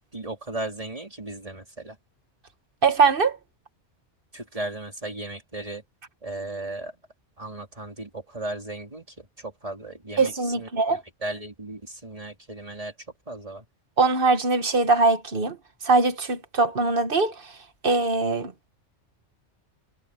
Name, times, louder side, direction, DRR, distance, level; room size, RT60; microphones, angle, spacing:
voice 1, 0.1-2.0 4.3-5.8 6.2-6.9 7.4-9.1 9.4-12.9 13.3-13.6, right 2 dB, 30° right, 3.5 m, -36 dB
voice 2, 2.8-3.4 10.2-11.0 14.0-15.6 15.8-17.6 17.8-18.5, right 3 dB, 50° right, 1.5 m, -22 dB
omnidirectional pair, 1.2 m